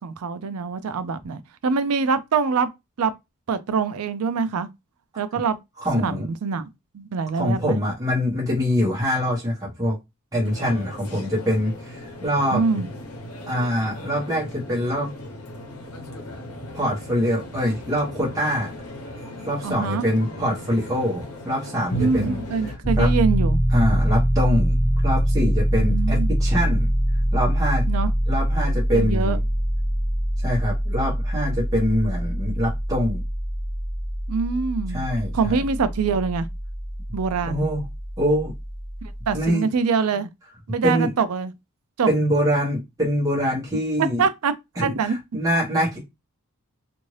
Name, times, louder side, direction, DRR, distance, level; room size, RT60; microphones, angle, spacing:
voice 1, 0.0-2.7 3.0-3.1 3.5-4.7 5.2-5.6 5.9-6.6 6.9-7.8 12.5-12.9 19.6-20.1 22.0-23.6 25.7-26.3 27.9-28.1 28.9-29.4 34.3-35.0 35.3-36.5 37.1-37.7 39.3-40.3 40.7-41.5 42.0-42.1 44.0-44.5 44.8-45.2, right 5 dB, 70° right, 0.4 m, -24 dB
voice 2, 5.8-6.3 7.3-9.9 10.3-12.6 13.5-15.1 16.7-18.7 19.4-22.4 23.0-23.1 23.7-26.9 27.3-27.9 28.3-29.4 30.4-33.2 34.9-35.6 37.4-37.8 38.2-38.5 39.3-39.6 40.8-41.1 42.1-44.2 44.8-46.1, equal, 15° right, 1.2 m, -24 dB
sound 1, 10.4-22.8, equal, 70° left, 0.9 m, -36 dB
Piano, 22.8-39.5, equal, 25° left, 1.1 m, -24 dB
2.7 x 2.5 x 3.2 m
head